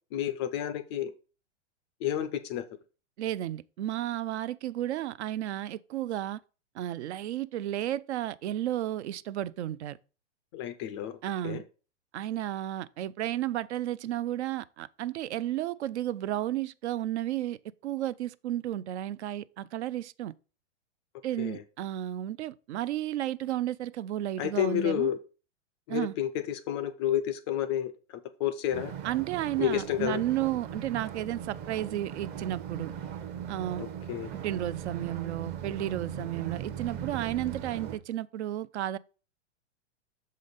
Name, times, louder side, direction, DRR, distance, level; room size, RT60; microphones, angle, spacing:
voice 1, 0.1-1.1 2.0-2.6 10.5-11.2 11.4-11.6 21.4-21.6 24.4-25.2 25.9-28.9 29.6-30.2 33.8-34.3, left 11 dB, 25° left, 0.3 m, -30 dB
voice 2, 3.2-6.4 6.7-10.0 11.2-11.6 12.1-20.3 21.2-25.1 25.9-26.1 29.0-32.9 33.5-33.8 34.3-39.0, right 13 dB, 70° right, 0.5 m, -33 dB
sound 1, 28.7-38.0, right 9 dB, 30° right, 0.7 m, -39 dB
6.5 x 5.1 x 3.9 m
hypercardioid pair, 140°, 36 cm